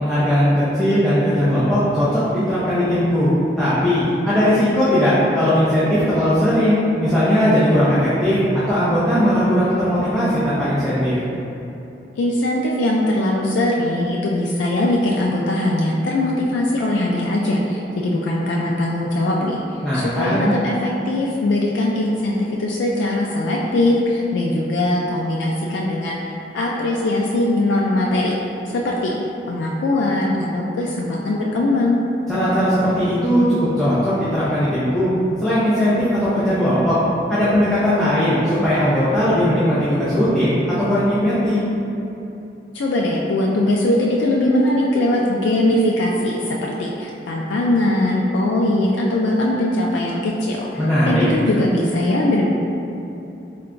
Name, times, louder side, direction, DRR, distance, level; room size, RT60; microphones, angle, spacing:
voice 1, 0.0-3.3 3.6-8.4 8.7-11.1 19.8-20.5 32.3-35.1 35.4-35.9 36.3-37.0 37.3-41.6 50.8-51.2, equal, ahead, -13 dB, 0.6 m, -18 dB
voice 2, 12.2-28.3 28.7-29.1 29.5-32.0 42.7-50.7 51.0-52.5, left 1 dB, 85° left, -3 dB, 0.3 m, -20 dB
3.8 x 2.2 x 3.7 m, 2.8 s
head